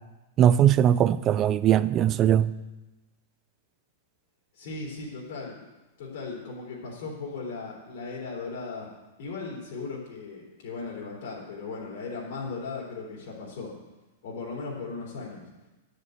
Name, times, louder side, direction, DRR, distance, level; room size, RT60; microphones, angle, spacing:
voice 1, 0.4-2.5, right 10 dB, 25° right, 0.3 m, -20 dB
voice 2, 4.5-5.6 6.0-8.9 9.2-13.7 14.2-15.5, left 4 dB, 60° left, 3.6 m, -37 dB
10.5 x 6.7 x 8.1 m
supercardioid pair, 160°, 0 cm